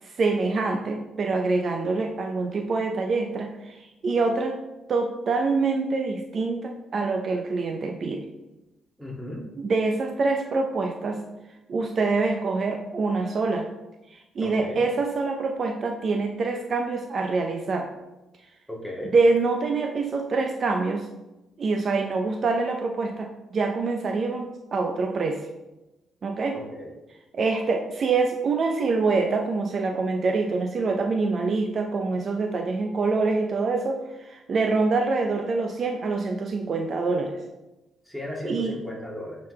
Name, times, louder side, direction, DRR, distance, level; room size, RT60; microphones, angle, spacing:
voice 1, 0.0-4.6 4.9-8.2 9.6-11.2 11.7-13.7 14.1-17.9 19.0-21.1 21.6-25.5 26.2-26.6 27.3-37.4 38.4-38.8, right 3 dB, 50° right, 4 dB, 0.5 m, -25 dB
voice 2, 9.0-9.4 14.4-14.8 18.7-19.1 26.5-26.9 38.1-39.4, left 1 dB, 5° right, -3 dB, 1.9 m, -35 dB
8.5 x 4.2 x 3.2 m, 1.0 s
cardioid pair, 90°, 0 cm